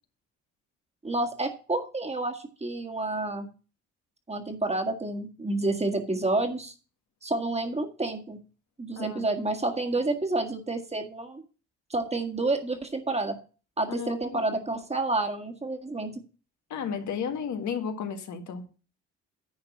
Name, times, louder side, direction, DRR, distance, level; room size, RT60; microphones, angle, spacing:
voice 1, 1.0-3.5 4.3-6.7 7.2-8.4 8.8-11.4 11.9-13.4 13.8-16.2, right 2 dB, 20° right, 1.8 m, -29 dB
voice 2, 9.0-9.3 13.9-14.4 16.7-18.7, left 6 dB, 70° left, 1.6 m, -33 dB
10.0 x 4.4 x 7.2 m
cardioid pair, 90°, 30 cm